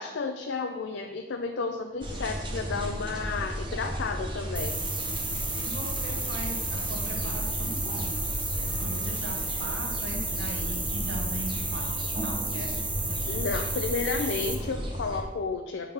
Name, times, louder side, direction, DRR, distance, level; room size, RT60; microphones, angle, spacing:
voice 1, 0.0-4.8 13.2-15.9, left 4 dB, 80° left, 4 dB, 0.4 m, -32 dB
sound 1, 2.0-15.2, equal, 25° right, 0.9 m, -34 dB
sound 2, 4.6-14.6, right 2 dB, 10° right, 0.4 m, -33 dB
voice 2, 5.6-8.2 8.7-12.8, right 1 dB, 70° right, 3 dB, 0.8 m, -39 dB
7.1 x 3.6 x 5.4 m, 1.2 s
head